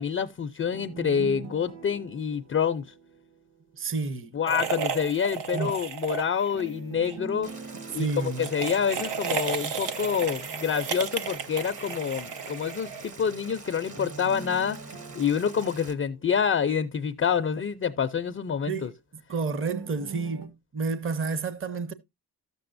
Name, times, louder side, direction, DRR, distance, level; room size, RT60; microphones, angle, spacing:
voice 1, 0.0-2.9 4.3-7.5 7.9-14.8 15.1-18.9, left 7 dB, 35° left, 0.4 m, -27 dB
sound 1, 0.7-3.8 6.5-9.8 13.9-17.0 19.7-20.5, right 4 dB, 65° right, 1.6 m, -44 dB
voice 2, 3.8-4.4 5.5-5.8 7.9-8.5 18.7-19.0 19.3-21.9, right 4 dB, 30° right, 0.7 m, -30 dB
sound 2, 4.5-6.7 6.9-7.2 8.3-13.2, right 7 dB, 80° right, 0.9 m, -33 dB
Boiling, 7.4-15.9, right 3 dB, 45° right, 1.2 m, -45 dB
13.0 x 6.8 x 2.5 m
cardioid pair, 110°, 42 cm